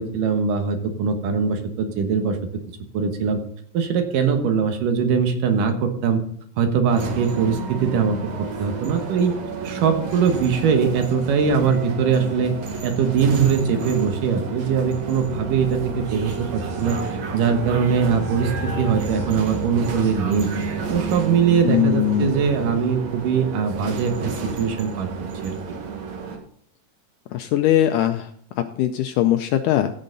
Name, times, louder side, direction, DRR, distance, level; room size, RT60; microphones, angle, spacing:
voice 1, 0.0-2.4 2.9-3.4 3.7-6.2 6.6-9.3 9.6-12.5 12.8-17.0 17.3-20.5 20.9-25.1 25.4-25.6, right 6 dB, 70° right, 6 dB, 2.8 m, -21 dB
sound 1, 6.9-26.4, right 4 dB, 55° right, 2.6 m, -30 dB
voice 2, 21.6-22.4 27.3-28.3 28.6-29.9, left 12 dB, 80° left, 8 dB, 1.9 m, -20 dB
15.5 x 6.5 x 3.9 m, 0.62 s
omnidirectional pair, 4.2 m